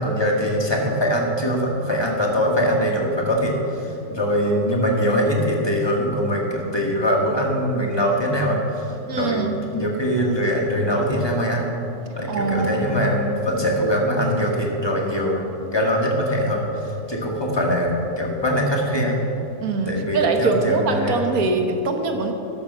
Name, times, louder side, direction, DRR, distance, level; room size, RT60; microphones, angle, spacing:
voice 1, 0.0-11.7 12.1-15.4 15.7-19.2 19.9-21.4, equal, 15° left, -1 dB, 2.0 m, -22 dB
voice 2, 9.1-9.6 12.3-13.1 19.6-22.3, right 3 dB, 65° right, 4 dB, 1.7 m, -23 dB
13.5 x 11.5 x 5.7 m, 3.0 s
omnidirectional pair, 1.7 m